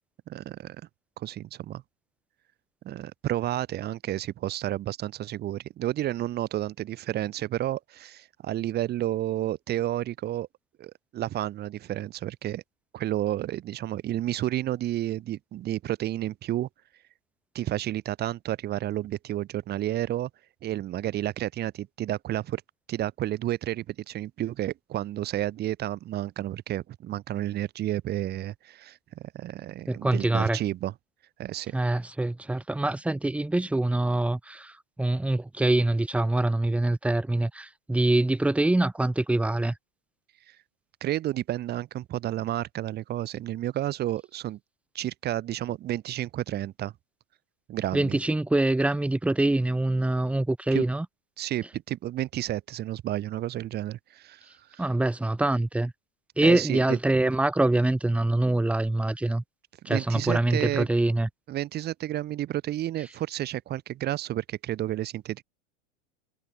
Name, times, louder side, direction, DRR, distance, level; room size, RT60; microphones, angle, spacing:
voice 1, 0.3-0.8 1.2-1.8 2.8-10.5 10.8-12.6 12.9-16.7 17.5-20.3 20.6-22.6 22.9-30.9 31.4-31.7 41.0-44.6 44.9-46.9 47.7-48.2 50.7-50.8 51.4-54.9 56.4-57.0 59.9-60.9 61.5-65.4, right 13 dB, 25° right, 4.4 m, -31 dB
voice 2, 29.9-30.6 31.7-39.7 47.9-51.1 54.8-55.9 56.4-59.4 59.9-61.3, right 2 dB, 5° right, 2.3 m, -24 dB
supercardioid pair, 170°, 37 cm